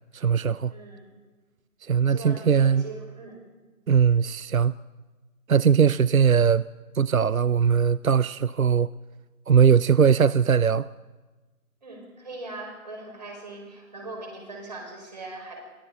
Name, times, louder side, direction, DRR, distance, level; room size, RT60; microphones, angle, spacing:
voice 1, 0.1-0.7 1.8-2.8 3.9-4.7 5.5-6.6 6.9-8.9 9.5-10.9, right 7 dB, 70° right, 0.5 m, -20 dB
voice 2, 0.7-1.1 2.1-3.4 11.8-15.6, right 2 dB, 30° right, 5.1 m, -40 dB
28.5 x 23.0 x 3.9 m
figure-of-eight pair, 165°, 44 cm